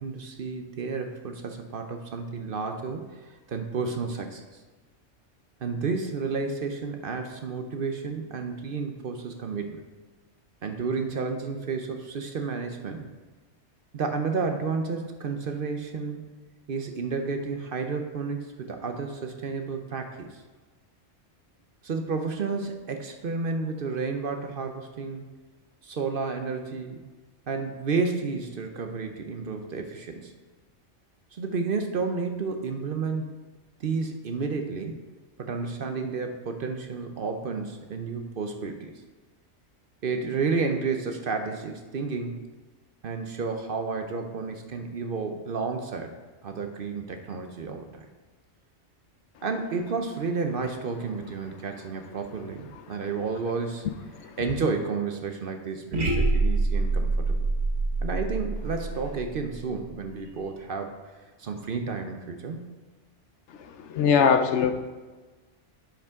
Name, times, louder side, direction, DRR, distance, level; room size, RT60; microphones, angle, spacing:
voice 1, 0.0-3.0 3.5-4.4 5.6-9.8 10.6-13.0 13.9-16.2 16.7-20.3 21.8-25.2 25.8-27.0 27.5-30.3 31.3-33.2 33.8-35.0 35.4-38.9 40.0-42.4 43.0-46.1 46.4-48.1 49.4-53.8 54.4-57.5 58.0-60.9 61.4-62.6, right 4 dB, 55° right, 5 dB, 0.8 m, -31 dB
sound 1, 55.9-60.0, right 3 dB, 75° right, 1.5 m, -26 dB
voice 2, 63.9-64.7, left 6 dB, 70° left, 7 dB, 0.9 m, -20 dB
10.0 x 5.3 x 3.6 m, 1.3 s
omnidirectional pair, 1.2 m